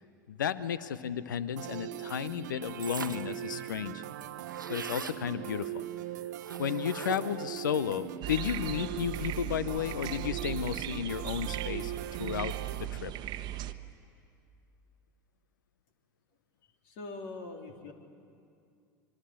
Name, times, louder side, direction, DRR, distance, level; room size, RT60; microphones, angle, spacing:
voice 1, 0.3-4.0 4.7-5.8 6.6-11.9 12.2-12.5 12.8-13.1, left 8 dB, 75° left, 16 dB, 0.8 m, -33 dB
sound 1, 1.6-12.8, right 13 dB, 65° right, 0.9 m, -41 dB
sound 2, 2.8-3.4 3.8-3.9 4.0-5.2 6.4-7.4, right 5 dB, 90° right, 1.1 m, -41 dB
sound 3, 8.2-13.7, right 13 dB, 45° right, 1.1 m, -38 dB
voice 2, 16.8-17.9, left 3 dB, 55° left, 3 dB, 3.3 m, -42 dB
25.5 x 23.5 x 8.7 m, 2.4 s
figure-of-eight pair, 80°, 10 cm